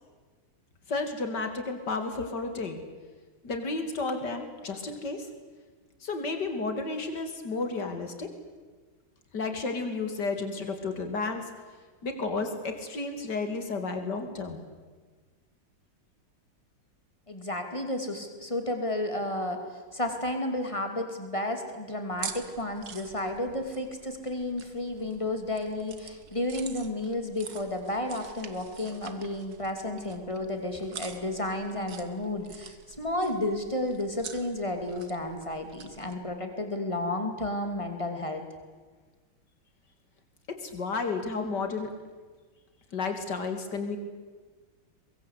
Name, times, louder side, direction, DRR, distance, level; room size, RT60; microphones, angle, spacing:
voice 1, 0.9-2.8 3.4-5.3 6.0-8.3 9.3-11.5 12.0-14.6 40.5-41.9 42.9-44.0, left 3 dB, 50° left, 6 dB, 3.2 m, -32 dB
voice 2, 17.3-38.4, left 1 dB, 15° left, 5 dB, 2.8 m, -32 dB
sound 1, 22.1-36.2, right 7 dB, 50° right, 1.8 m, -46 dB
23.0 x 22.0 x 8.3 m, 1.4 s
omnidirectional pair, 2.4 m